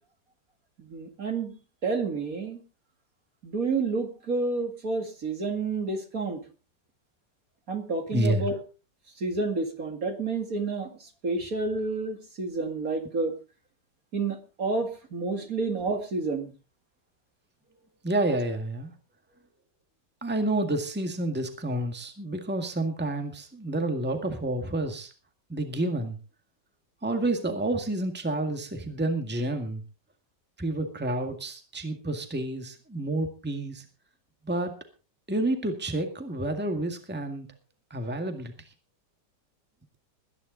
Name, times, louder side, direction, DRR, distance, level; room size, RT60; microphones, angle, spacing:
voice 1, 0.8-1.6 1.8-2.6 3.4-6.4 7.7-8.6 9.2-13.3 14.1-16.5, right 3 dB, 55° right, 5 dB, 2.5 m, -30 dB
voice 2, 8.1-8.5 18.0-18.9 20.2-25.1 25.5-26.2 27.0-29.8 30.6-33.9 34.4-34.7 35.3-37.5 37.9-38.5, right 1 dB, 5° right, 5 dB, 1.8 m, -29 dB
21.0 x 10.5 x 3.9 m, 0.33 s
omnidirectional pair, 1.9 m